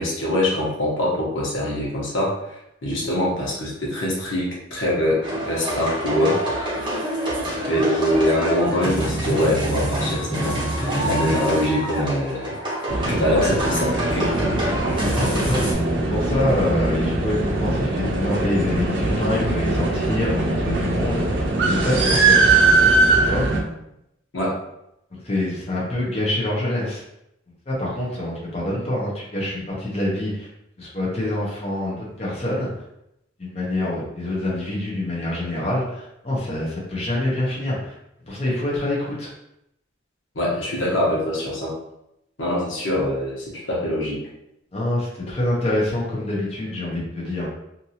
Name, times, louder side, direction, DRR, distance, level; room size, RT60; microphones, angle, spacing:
voice 1, 0.0-6.4 7.7-12.5 13.1-14.3 24.3-24.6 40.3-41.8 42.4-44.2, left 1 dB, 90° left, -5 dB, 1.0 m, -23 dB
sound 1, 5.2-15.7, right 1 dB, 25° right, 0.8 m, -26 dB
voice 2, 7.4-7.8 15.1-22.5 23.3-23.4 25.1-27.0 27.7-30.5 30.8-32.7 33.4-37.9 38.3-39.3 44.7-47.4, left 1 dB, 35° left, -5 dB, 0.7 m, -26 dB
sound 2, 12.9-23.6, right 3 dB, 65° right, 0.6 m, -21 dB
2.7 x 2.6 x 2.8 m, 0.82 s
head